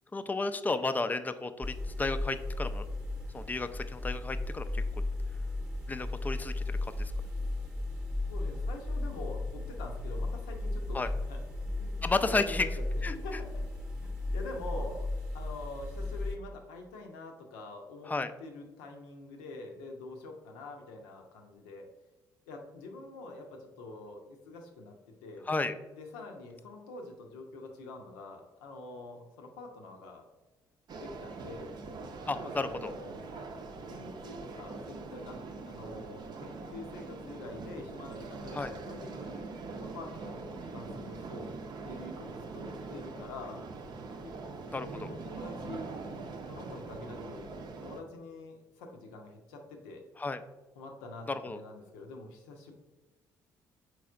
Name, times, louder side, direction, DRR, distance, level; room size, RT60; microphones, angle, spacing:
voice 1, 0.1-2.9 3.3-5.0 5.9-7.1 10.9-11.1 12.0-12.7 13.0-13.1 18.1-18.3 25.5-25.7 32.3-32.9 38.5-38.7 44.7-45.1 50.2-50.4 51.3-51.6, left 3 dB, 15° left, 10 dB, 0.4 m, -33 dB
sound 1, 1.6-16.4, left 2 dB, 5° right, 0.8 m, -35 dB
voice 2, 8.3-12.7 13.1-13.6 14.0-15.1 15.3-18.1 18.4-21.9 22.5-25.0 25.2-25.5 25.9-30.3 31.0-31.7 32.3-33.2 33.9-35.4 35.7-39.5 39.8-41.5 41.8-43.6 44.2-44.4 44.7-45.9 46.5-50.0 50.8-52.7, left 2 dB, 75° left, 3 dB, 0.7 m, -45 dB
sound 2, 30.9-48.0, right 3 dB, 45° right, 0.6 m, -43 dB
4.7 x 4.1 x 2.4 m, 1.1 s
hypercardioid pair, 50°, 10 cm